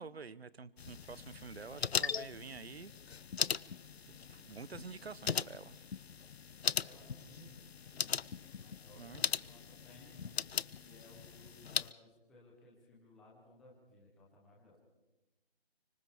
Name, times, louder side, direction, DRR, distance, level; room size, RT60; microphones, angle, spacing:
voice 1, 0.0-2.9 4.3-5.8 9.0-9.4, right 5 dB, 75° right, 18 dB, 1.1 m, -48 dB
sound 1, 0.8-11.9, left 7 dB, 80° left, 0.6 m, -39 dB
voice 2, 6.6-10.5 10.8-14.8, left 1 dB, ahead, -4 dB, 0.8 m, -60 dB
29.5 x 25.5 x 3.6 m, 1.0 s
figure-of-eight pair, 165°, 31 cm